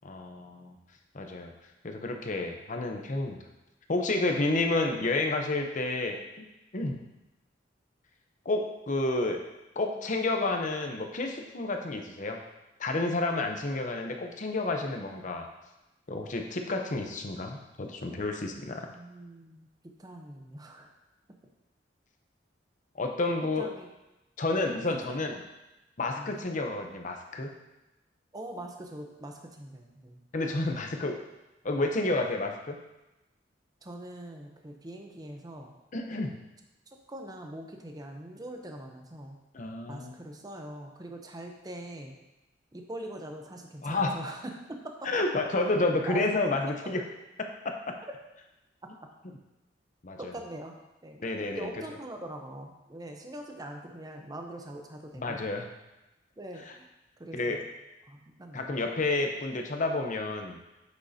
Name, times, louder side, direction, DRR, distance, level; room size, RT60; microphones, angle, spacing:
voice 1, 0.0-0.8 1.1-1.5 1.8-3.4 3.9-6.2 6.7-7.0 8.4-9.4 9.8-12.4 12.8-15.5 16.1-18.8 22.9-23.7 24.4-25.4 26.0-27.5 30.3-31.2 31.6-32.8 35.9-36.4 39.5-40.1 43.8-44.2 45.0-47.0 47.4-48.0 50.0-50.3 51.2-51.7 55.2-55.7 57.3-57.6 58.5-60.6, left 2 dB, 45° left, 3 dB, 0.8 m, -30 dB
voice 2, 18.9-19.7 20.0-20.9 23.6-23.9 25.1-25.2 26.1-26.4 28.3-30.2 33.8-35.7 36.9-39.4 39.9-42.2 42.7-44.5 44.8-45.1 46.1-46.3 48.8-48.9 50.2-50.8 51.0-51.2 51.5-55.4 56.4-56.9 57.2-57.6 58.1-58.8, right 1 dB, 20° right, 3 dB, 0.7 m, -42 dB
8.2 x 6.3 x 2.8 m, 0.98 s
head